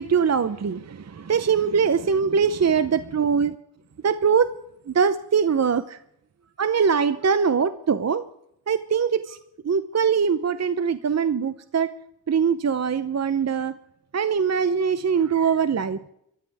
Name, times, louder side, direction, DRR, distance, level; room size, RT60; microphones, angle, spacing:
voice 1, 0.0-3.5 4.0-4.5 4.9-6.0 6.6-8.2 8.7-9.4 9.6-11.9 12.3-13.7 14.1-16.0, right 6 dB, 40° right, 12 dB, 0.8 m, -22 dB
27.5 x 14.0 x 3.5 m, 0.76 s
cardioid pair, 80°, 43 cm